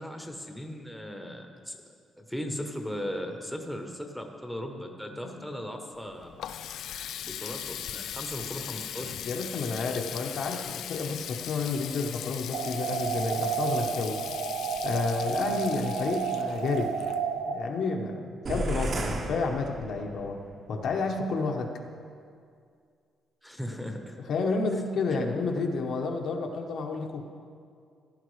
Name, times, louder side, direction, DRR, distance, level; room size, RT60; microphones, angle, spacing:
voice 1, 0.0-1.8 2.2-6.3 7.2-9.1 23.4-24.2, equal, ahead, 3 dB, 0.8 m, -37 dB
Water tap faucet, 6.0-17.6, left 10 dB, 75° left, 0.4 m, -39 dB
voice 2, 9.2-14.2 14.8-17.0 17.5-20.4 20.7-21.8 24.3-27.2, left 4 dB, 60° left, 3 dB, 0.9 m, -30 dB
sound 1, 12.5-17.5, right 6 dB, 85° right, 0.9 m, -31 dB
sound 2, 18.4-20.3, right 2 dB, 40° right, 1.0 m, -33 dB
15.5 x 10.5 x 3.2 m, 2.3 s
cardioid pair, 155°, 0 cm